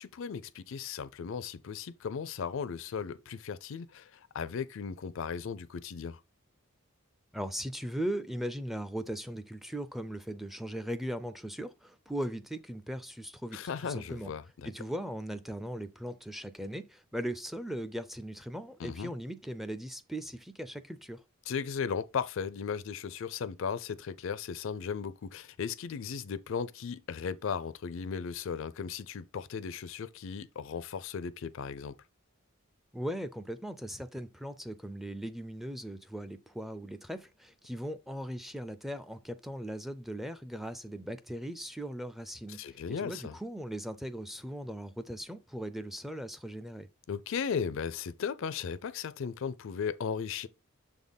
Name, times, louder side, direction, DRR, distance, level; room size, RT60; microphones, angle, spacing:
voice 1, 0.0-6.2 13.5-14.7 18.8-19.1 21.5-31.9 42.5-43.4 47.1-50.5, left 6 dB, 60° left, 0.4 m, -36 dB
voice 2, 7.3-14.3 14.6-21.2 32.9-46.9, equal, ahead, 0.4 m, -39 dB
6.7 x 3.6 x 4.0 m
head